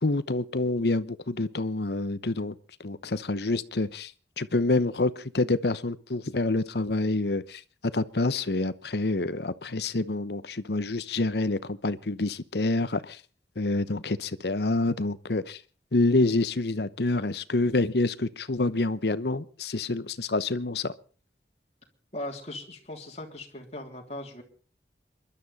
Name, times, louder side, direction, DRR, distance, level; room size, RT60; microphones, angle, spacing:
voice 1, 0.0-2.5 2.8-4.1 4.4-7.6 7.9-13.2 13.6-15.6 15.9-20.9, left 2 dB, 65° left, 0.9 m, -27 dB
voice 2, 22.1-24.4, left 1 dB, 40° left, 3.3 m, -39 dB
27.5 x 12.0 x 4.2 m
head